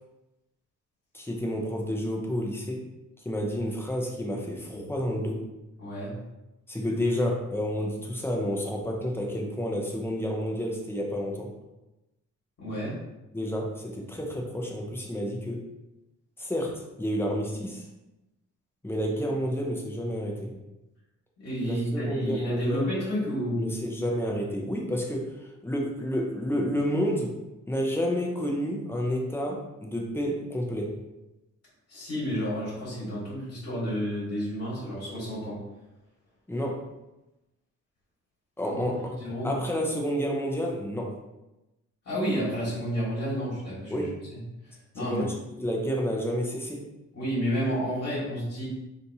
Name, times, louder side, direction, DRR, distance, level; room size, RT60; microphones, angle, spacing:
voice 1, 1.1-2.9 3.2-5.4 6.7-11.5 13.3-15.6 16.4-17.8 18.8-20.5 21.6-22.9 23.6-27.4 27.7-31.0 36.5-36.8 38.6-39.2 39.4-41.2 43.9-44.1 45.0-46.8, equal, 10° left, 0 dB, 0.5 m, -30 dB
voice 2, 5.8-6.1 12.6-12.9 21.4-23.8 31.9-35.5 38.7-38.8 39.2-39.5 42.0-44.4 44.7-45.3 47.1-48.7, equal, 55° left, -8 dB, 1.4 m, -30 dB
3.4 x 2.7 x 2.7 m, 0.97 s
cardioid pair, 130°, 31 cm